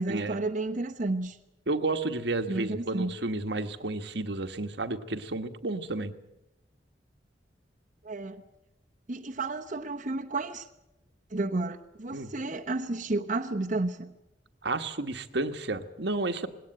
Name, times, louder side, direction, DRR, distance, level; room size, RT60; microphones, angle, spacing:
voice 1, 0.0-1.4 2.5-3.1 8.0-8.4 9.1-10.7 11.3-14.1, right 2 dB, 45° right, 3 dB, 1.0 m, -31 dB
voice 2, 1.7-6.1 12.1-12.3 14.6-16.5, right 2 dB, 70° right, 8 dB, 1.3 m, -31 dB
20.0 x 17.5 x 9.1 m, 0.93 s
head